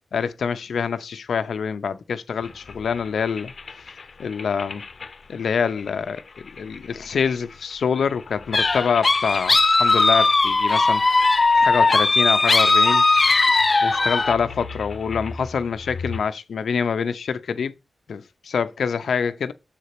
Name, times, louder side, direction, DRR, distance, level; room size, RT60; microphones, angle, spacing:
voice 1, 0.1-3.5 4.2-4.8 5.3-6.2 6.6-11.3 11.5-13.0 13.8-17.7 18.1-19.5, left 6 dB, 85° left, 0.7 m, -25 dB
sound 1, 2.4-16.2, left 4 dB, 55° left, 1.0 m, -40 dB
sound 2, 8.5-14.3, left 3 dB, 35° left, 0.4 m, -18 dB
7.5 x 4.3 x 6.7 m
wide cardioid pair, 100°, 0 cm